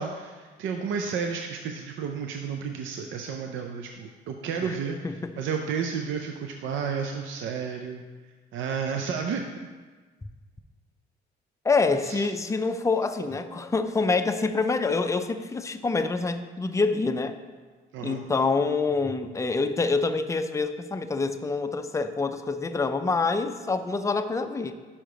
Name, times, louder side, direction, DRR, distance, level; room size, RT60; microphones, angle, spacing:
voice 1, 0.0-8.0 8.5-9.5 12.0-12.3 17.9-18.2, right 6 dB, 75° right, 3 dB, 0.5 m, -32 dB
voice 2, 11.6-17.4 18.0-24.7, left 4 dB, 15° left, 8 dB, 0.4 m, -26 dB
5.6 x 4.8 x 5.0 m, 1.4 s
cardioid pair, 90°, 20 cm